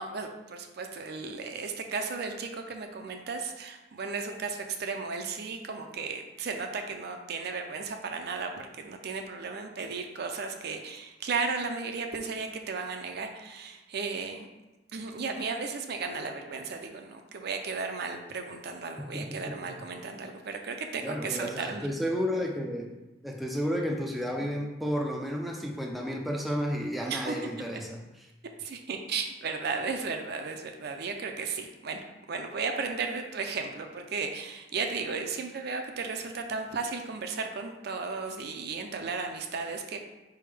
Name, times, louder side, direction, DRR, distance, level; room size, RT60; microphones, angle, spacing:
voice 1, 0.0-14.5 14.9-21.9 24.4-24.5 27.1-27.4 28.6-32.0 32.3-40.0, right 4 dB, 60° right, 5 dB, 0.5 m, -35 dB
voice 2, 19.1-19.5 21.0-22.9 23.2-28.0, equal, ahead, -1 dB, 0.4 m, -32 dB
4.5 x 3.4 x 3.3 m, 1.1 s
head